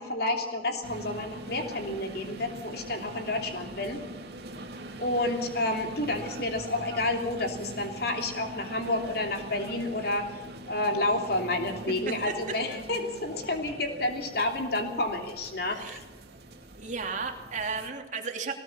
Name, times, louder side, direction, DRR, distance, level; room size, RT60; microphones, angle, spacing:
voice 1, 0.0-4.0 5.0-10.3 10.7-16.0, left 2 dB, 60° left, 4 dB, 3.1 m, -30 dB
sound 1, 0.8-17.9, right 1 dB, 65° right, 2.7 m, -43 dB
voice 2, 12.1-12.4 15.7-16.0 16.8-18.5, right 4 dB, 45° right, 3 dB, 2.8 m, -34 dB
19.5 x 19.0 x 7.2 m, 1.2 s
head